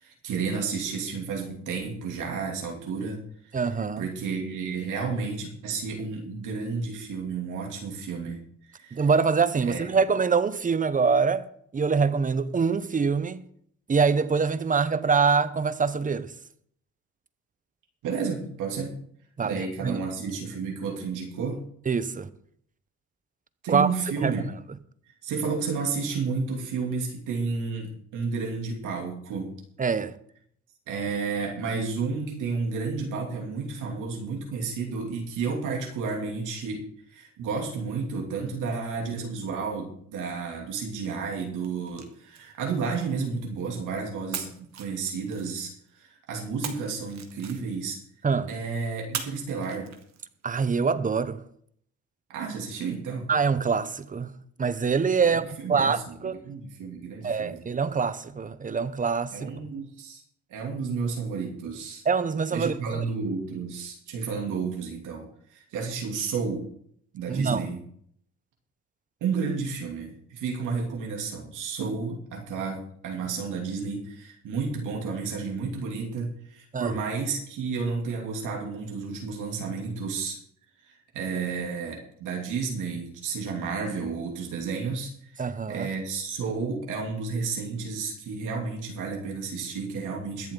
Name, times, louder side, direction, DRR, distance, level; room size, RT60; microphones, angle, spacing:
voice 1, 0.0-3.2 4.0-8.4 8.7-9.1 9.6-9.9 18.0-19.0 19.4-21.6 23.6-24.4 25.2-29.5 30.9-36.8 37.1-45.7 46.0-48.0 48.5-49.9 52.3-53.3 55.2-57.6 59.3-60.2 60.5-62.0 62.5-66.6 67.1-67.8 69.2-80.4 80.9-90.5, right 5 dB, 85° right, 2.9 m, -31 dB
voice 2, 3.5-4.1 8.9-11.5 11.7-13.4 13.9-16.3 19.4-20.3 21.9-22.3 23.7-23.9 24.2-24.3 29.8-30.1 48.2-48.5 50.4-51.4 53.3-54.3 54.6-55.4 55.7-56.0 56.2-56.3 57.2-59.5 62.1-63.0 67.3-67.7 76.7-76.9 85.4-85.9, right 5 dB, 25° right, 0.9 m, -24 dB
sound 1, 41.6-43.8 44.3-45.9 46.6-48.0 49.1-50.5, right 8 dB, 65° right, 1.7 m, -41 dB
22.0 x 7.5 x 3.9 m
cardioid pair, 90°, 30 cm